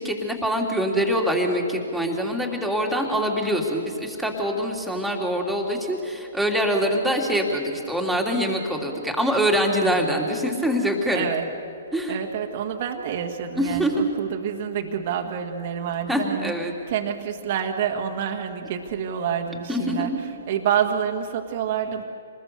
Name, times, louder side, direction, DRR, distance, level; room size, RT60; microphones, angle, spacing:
voice 1, 0.0-11.3 11.9-12.1 13.6-13.9 16.1-16.7 19.7-20.2, equal, ahead, -1 dB, 2.9 m, -24 dB
voice 2, 9.9-10.3 11.1-11.5 12.1-22.0, right 8 dB, 50° right, 3 dB, 1.7 m, -28 dB
26.5 x 20.5 x 6.8 m, 2.7 s
hypercardioid pair, 135°, 0 cm